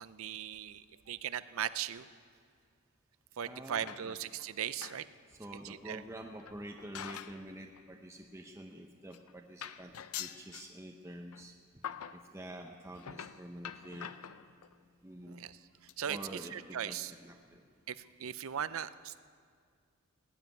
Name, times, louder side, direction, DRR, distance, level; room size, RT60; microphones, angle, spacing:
voice 1, 0.0-2.1 3.4-5.0 5.6-6.0 15.3-15.6 16.0-16.2 16.5-17.1 17.9-19.2, right 9 dB, 70° right, 15 dB, 0.5 m, -38 dB
voice 2, 3.4-4.2 5.3-9.9 10.2-11.5 12.1-14.1 15.0-15.4 16.1-17.6 18.3-18.4, right 1 dB, 15° right, 2 dB, 0.7 m, -47 dB
sound 1, 3.9-4.4 4.8-5.0 5.4-5.5 6.4-7.4 7.8-7.9 8.8-8.9 9.1-9.3 9.6-10.7 11.3-11.4 11.8-12.2 12.9-14.7 15.4-15.6 15.9-16.0 16.3-16.4 16.6-16.7, left 9 dB, 90° left, 0.5 m, -45 dB
18.0 x 7.3 x 9.4 m, 2.1 s
head